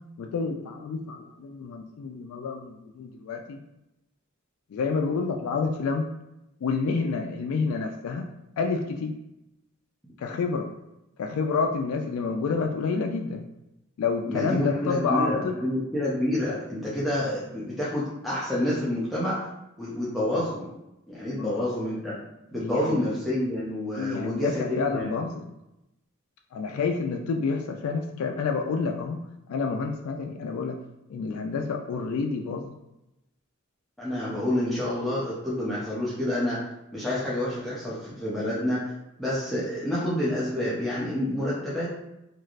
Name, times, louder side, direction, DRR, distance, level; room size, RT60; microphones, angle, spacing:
voice 1, 0.2-3.6 4.7-6.1 6.6-8.3 8.6-9.2 10.2-10.7 11.2-13.5 14.0-15.6 21.3-21.7 22.6-23.0 23.9-25.4 26.5-29.2 29.5-30.8 31.1-32.7, left 4 dB, 85° left, 3 dB, 0.3 m, -29 dB
voice 2, 14.3-19.5 19.8-20.7 21.1-22.2 22.5-25.1 34.0-36.7 36.9-38.9 39.2-41.9, left 1 dB, ahead, -8 dB, 0.5 m, -28 dB
3.1 x 2.4 x 2.4 m, 0.90 s
head